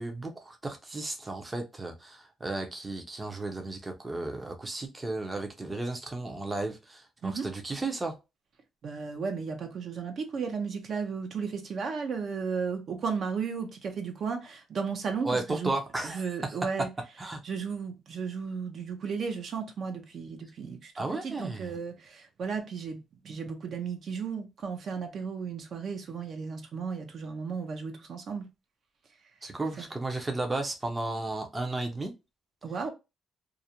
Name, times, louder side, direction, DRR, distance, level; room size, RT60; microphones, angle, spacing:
voice 1, 0.0-8.1 15.2-16.6 17.2-17.4 21.0-21.7 29.4-32.1, right 2 dB, 20° right, 0.5 m, -34 dB
voice 2, 8.8-15.7 16.0-16.9 17.4-20.9 21.2-28.5 29.8-29.9 32.6-32.9, right 5 dB, 60° right, 0.6 m, -34 dB
2.4 x 2.0 x 2.8 m
cardioid pair, 90°, 0 cm